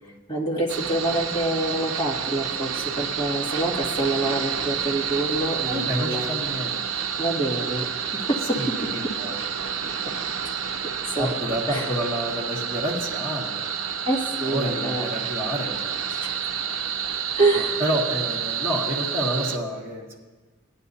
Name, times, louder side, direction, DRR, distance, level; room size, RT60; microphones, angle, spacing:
voice 1, 0.3-6.4 7.2-7.9 8.3-8.6 11.2-11.3 11.7-11.8 14.0-15.0 16.2-16.3 17.4-17.8, right 2 dB, 20° left, -5 dB, 2.1 m, -26 dB
sound 1, 0.7-19.6, right 7 dB, 70° right, 0.6 m, -29 dB
voice 2, 5.6-6.7 8.6-9.4 9.7-9.9 11.2-14.0 14.4-16.4 17.5-20.2, equal, 10° right, -7 dB, 1.8 m, -29 dB
19.5 x 10.5 x 2.8 m, 1.3 s
head